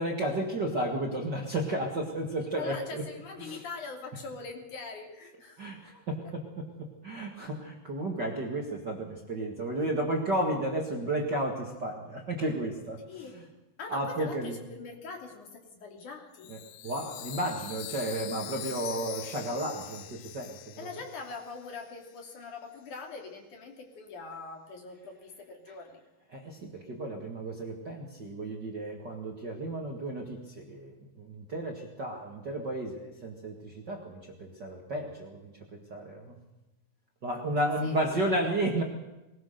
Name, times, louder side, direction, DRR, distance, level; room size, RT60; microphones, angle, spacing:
voice 1, 0.0-3.0 3.4-3.6 5.6-13.0 13.9-14.6 16.5-16.6 16.8-20.6 26.3-36.4 37.2-38.8, right 1 dB, 35° right, 1 dB, 1.9 m, -33 dB
voice 2, 2.6-5.6 13.0-13.4 13.8-16.5 20.8-26.0 37.8-38.0, left 4 dB, 60° left, 2 dB, 4.4 m, -42 dB
Chime, 16.4-21.9, left 13 dB, 85° left, 2.6 m, -43 dB
21.5 x 20.0 x 6.7 m, 1.0 s
omnidirectional pair, 4.1 m